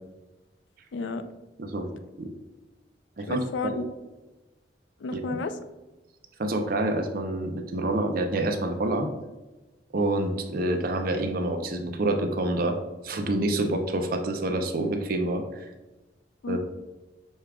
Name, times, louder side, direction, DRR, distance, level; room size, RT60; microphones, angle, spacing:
voice 1, 0.9-1.3 3.3-3.8 5.0-5.5 16.4-16.6, left 3 dB, 90° left, 10 dB, 0.4 m, -31 dB
voice 2, 6.4-9.1 9.9-12.8 13.0-15.6 16.5-16.6, right 2 dB, 55° right, 5 dB, 0.6 m, -27 dB
6.3 x 2.4 x 3.4 m, 1.1 s
head